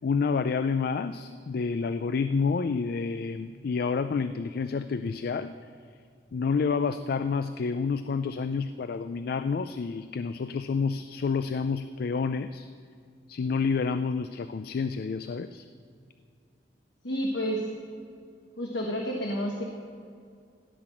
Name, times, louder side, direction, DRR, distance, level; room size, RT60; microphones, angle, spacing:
voice 1, 0.0-5.5 6.3-12.7 13.3-15.6, left 5 dB, 55° left, 12 dB, 0.3 m, -29 dB
voice 2, 17.0-17.7 18.6-19.6, equal, 75° left, 0 dB, 1.3 m, -30 dB
16.5 x 6.0 x 7.6 m, 2.3 s
head